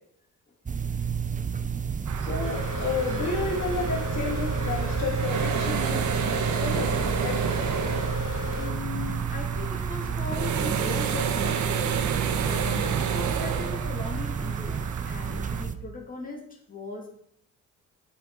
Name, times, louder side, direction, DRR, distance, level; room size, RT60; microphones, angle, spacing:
sound 1, 0.7-15.8, right 6 dB, 25° right, 0.9 m, -30 dB
sound 2, 2.1-15.6, right 7 dB, 70° right, 1.4 m, -32 dB
voice 1, 2.2-6.1 6.6-7.6 7.9-8.1, left 4 dB, 65° left, 0 dB, 2.8 m, -32 dB
sound 3, 2.4-8.7, left 5 dB, 45° left, 2.5 m, -36 dB
voice 2, 8.6-17.1, left 3 dB, 25° left, 0 dB, 2.7 m, -38 dB
10.5 x 8.5 x 4.1 m, 0.66 s
cardioid pair, 90°, 30 cm